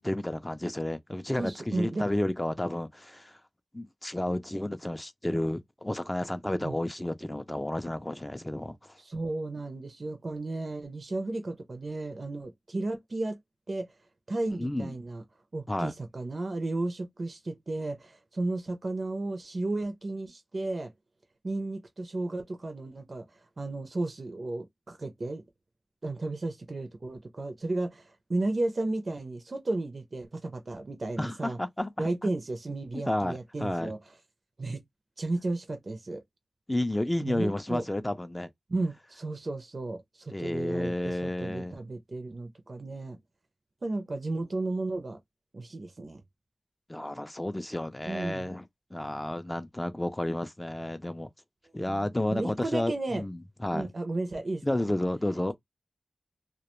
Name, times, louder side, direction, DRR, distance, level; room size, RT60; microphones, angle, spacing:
voice 1, 0.0-3.4 3.7-9.0 14.6-14.9 15.7-15.9 31.2-32.3 32.9-33.9 36.7-38.5 40.3-41.8 46.9-48.6 48.9-51.3 51.7-53.9 54.6-55.5, left 1 dB, 15° left, 0.3 m, -31 dB
voice 2, 1.4-2.0 6.6-6.8 9.0-13.4 13.7-13.9 14.3-15.2 15.5-20.9 21.4-25.4 26.0-31.6 32.0-34.0 34.6-34.8 35.2-36.2 37.2-37.8 38.7-43.2 43.8-45.2 45.5-46.2 48.1-48.5 51.9-53.2 53.7-54.9, right 2 dB, 55° right, 0.4 m, -34 dB
2.2 x 2.1 x 2.9 m
wide cardioid pair, 70°, 0 cm